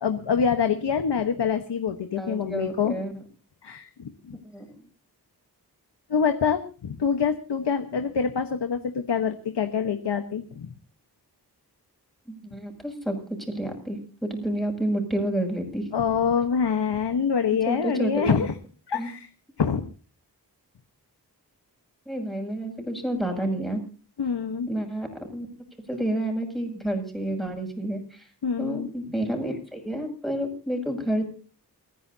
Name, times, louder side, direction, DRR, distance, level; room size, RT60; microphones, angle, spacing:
voice 1, 0.0-3.0 3.6-4.4 6.1-10.7 15.9-18.5 18.9-19.3 19.6-19.8 24.2-24.7 28.4-28.9, left 6 dB, 90° left, 7 dB, 1.3 m, -25 dB
voice 2, 2.2-3.1 4.3-4.8 12.3-15.9 17.7-18.5 18.9-19.1 22.1-23.8 24.7-25.5 25.9-28.3 28.6-31.3, right 1 dB, ahead, 3 dB, 7.2 m, -30 dB
29.0 x 11.0 x 2.8 m, 0.38 s
cardioid pair, 40°, 40 cm